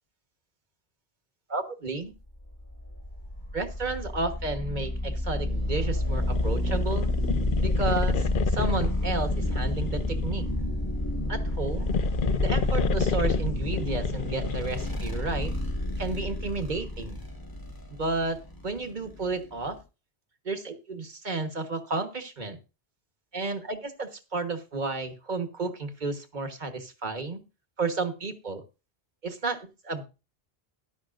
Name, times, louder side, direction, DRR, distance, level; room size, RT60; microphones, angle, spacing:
voice 1, 1.5-2.1 3.5-7.1 7.6-10.5 11.3-11.9 12.4-15.5 16.0-17.2 17.9-19.8 20.4-22.6 23.3-27.4 27.8-28.6 29.2-30.0, right 3 dB, 45° right, 7 dB, 1.5 m, -32 dB
sound 1, 2.4-19.8, left 1 dB, 20° left, 1.5 m, -30 dB
sound 2, 6.1-10.5 11.4-15.1, left 5 dB, 60° left, 0.9 m, -30 dB
14.0 x 11.0 x 2.5 m, 0.30 s
omnidirectional pair, 1.0 m